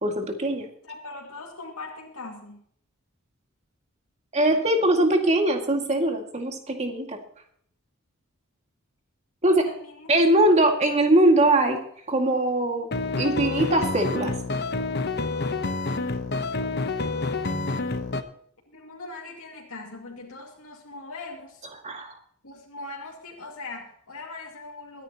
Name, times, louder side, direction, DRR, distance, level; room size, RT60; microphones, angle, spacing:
voice 1, 0.0-0.7 4.3-7.2 9.4-9.6 10.1-11.8 12.1-12.9 13.2-14.4 17.5-17.8 21.8-22.1, right 1 dB, 30° right, 3 dB, 2.1 m, -21 dB
voice 2, 0.8-2.6 9.4-10.1 10.3-10.5 18.7-21.7 22.4-25.0, left 3 dB, 85° left, -1 dB, 2.4 m, -40 dB
sound 1, 12.9-18.2, left 3 dB, 50° left, 1.0 m, -28 dB
22.5 x 10.0 x 2.9 m, 0.64 s
head